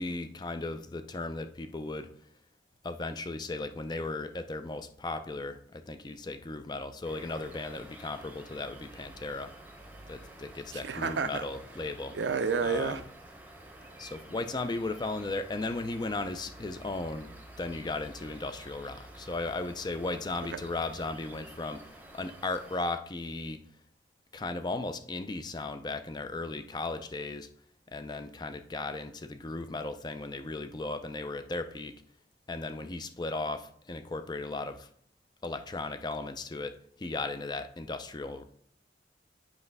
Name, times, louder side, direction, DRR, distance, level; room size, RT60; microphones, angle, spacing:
voice 1, 0.0-2.1 2.8-9.5 10.1-12.2 12.6-13.0 14.0-17.3 17.6-21.8 22.1-23.6 24.3-27.5 27.9-31.9 32.5-34.9 35.4-38.4, left 2 dB, 20° left, 9 dB, 0.4 m, -36 dB
sound 1, 7.0-22.8, right 1 dB, 10° right, 0.7 m, -50 dB
voice 2, 10.7-11.4 12.1-13.0 20.5-20.6, right 5 dB, 70° right, 11 dB, 0.5 m, -30 dB
8.1 x 3.2 x 5.3 m, 0.62 s
head